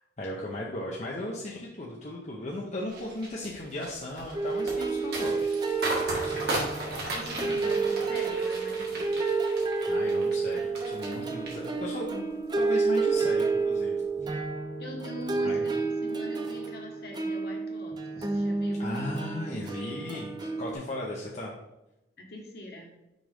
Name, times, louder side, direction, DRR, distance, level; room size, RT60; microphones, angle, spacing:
voice 1, 0.2-5.5 6.1-6.5 9.8-14.0 15.4-15.6 18.8-21.5, left 1 dB, 40° left, -3 dB, 0.7 m, -36 dB
sound 1, 2.9-11.2 11.5-12.1 12.5-12.8, right 1 dB, 60° right, 1.7 m, -35 dB
sound 2, 4.3-20.7, right 4 dB, 20° right, 0.5 m, -30 dB
voice 2, 7.1-9.2 14.8-18.8 22.2-22.9, equal, 55° left, 0 dB, 1.4 m, -42 dB
6.2 x 5.1 x 3.5 m, 0.93 s
head